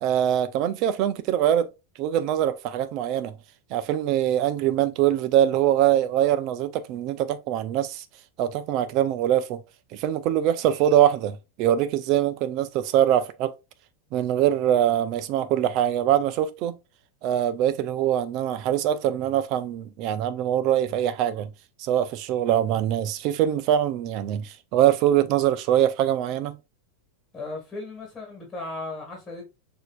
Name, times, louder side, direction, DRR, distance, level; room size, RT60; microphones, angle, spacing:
voice 1, 0.0-1.7 2.0-3.3 3.7-8.0 8.4-9.6 9.9-13.5 14.1-16.8 17.2-21.5 21.8-26.6, right 11 dB, 45° right, 0.6 m, -23 dB
voice 2, 27.3-29.4, left 3 dB, 15° left, 1.9 m, -36 dB
6.3 x 2.8 x 2.4 m
supercardioid pair, 135°, 0 cm